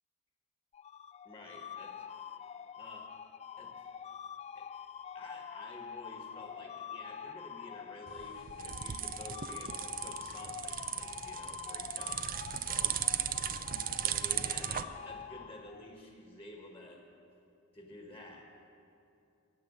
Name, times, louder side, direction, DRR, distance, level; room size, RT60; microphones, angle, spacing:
sound 1, 0.7-16.0, left 8 dB, 30° left, 0.3 m, -45 dB
voice 1, 1.2-2.0 2.8-3.1 3.6-3.9 4.5-4.7 5.1-13.0 13.9-17.0 17.7-18.4, left 1 dB, 10° left, 1 dB, 1.5 m, -51 dB
sound 2, 8.1-14.8, right 10 dB, 40° right, 0.5 m, -36 dB
15.5 x 7.7 x 9.7 m, 2.7 s
head